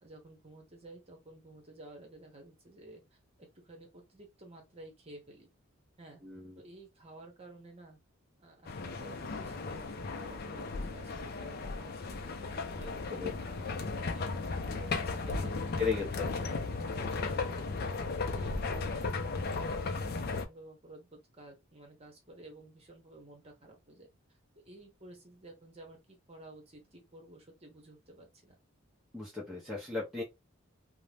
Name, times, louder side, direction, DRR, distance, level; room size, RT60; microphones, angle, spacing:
voice 1, 0.0-5.5 6.0-6.2 6.6-8.0 8.4-17.6 18.1-26.0 26.3-28.6, right 1 dB, 30° right, 0.8 m, -53 dB
voice 2, 6.2-6.6 13.1-13.3 15.8-16.3 18.3-18.7 29.1-30.2, left 4 dB, ahead, 0.6 m, -36 dB
sound 1, 8.7-20.4, left 3 dB, 45° left, 0.4 m, -36 dB
2.6 x 2.1 x 3.2 m
head